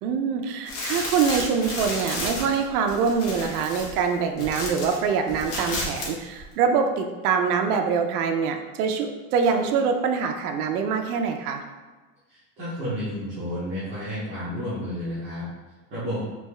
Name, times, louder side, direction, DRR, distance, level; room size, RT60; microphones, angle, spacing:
voice 1, 0.0-11.6, right 6 dB, 80° right, 5 dB, 0.6 m, -24 dB
sound 1, 0.7-5.0 5.3-6.1 6.4-6.5, left 2 dB, 80° left, 1.2 m, -32 dB
voice 2, 12.3-15.5 15.9-16.2, equal, 15° right, -12 dB, 0.4 m, -31 dB
3.4 x 2.7 x 3.1 m, 1.3 s
supercardioid pair, 180°, 45 cm